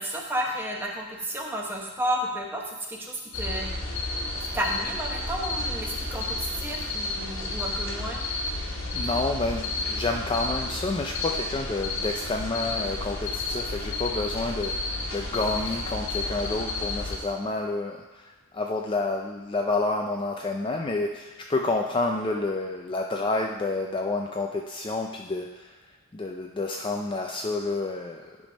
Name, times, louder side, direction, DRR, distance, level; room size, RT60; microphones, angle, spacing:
voice 1, 0.0-3.7 4.5-8.2, right 1 dB, 10° right, -1 dB, 1.0 m, -32 dB
sound 1, 3.3-17.2, left 2 dB, 65° left, 1.3 m, -31 dB
voice 2, 8.9-25.8 26.1-28.4, left 2 dB, 25° left, 2 dB, 0.4 m, -29 dB
10.0 x 3.5 x 5.2 m, 1.2 s
head